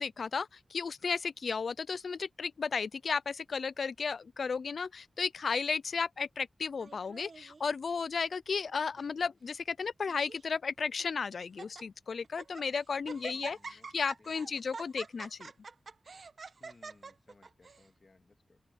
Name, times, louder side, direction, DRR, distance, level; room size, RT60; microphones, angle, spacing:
voice 1, 0.0-15.5, left 5 dB, 60° left, 0.3 m, -34 dB
Laughter, 6.8-7.6 8.3-8.7 9.0-9.1 9.8-10.4 11.0-11.1 11.4-11.8 12.2-12.7 13.1-17.9, right 4 dB, 50° right, 1.2 m, -47 dB
voice 2, 8.9-9.3 13.0-13.9 14.2-14.7 16.6-18.6, left 3 dB, 35° left, 2.2 m, -63 dB
open air
wide cardioid pair, 160°, 0 cm